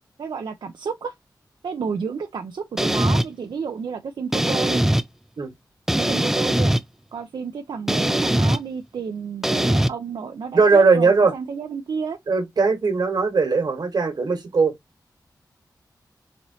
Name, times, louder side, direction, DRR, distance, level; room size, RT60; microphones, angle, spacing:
voice 1, 0.2-1.1 1.6-4.8 6.0-6.7 7.1-12.2, right 6 dB, 85° right, 0.5 m, -31 dB
sound 1, 2.8-3.3 4.3-5.0 5.9-6.8 7.9-8.6 9.4-9.9, right 1 dB, 5° right, 0.3 m, -20 dB
voice 2, 10.5-11.3 12.3-14.7, right 4 dB, 65° right, 1.4 m, -19 dB
4.1 x 3.1 x 2.7 m
wide cardioid pair, 95°, 8 cm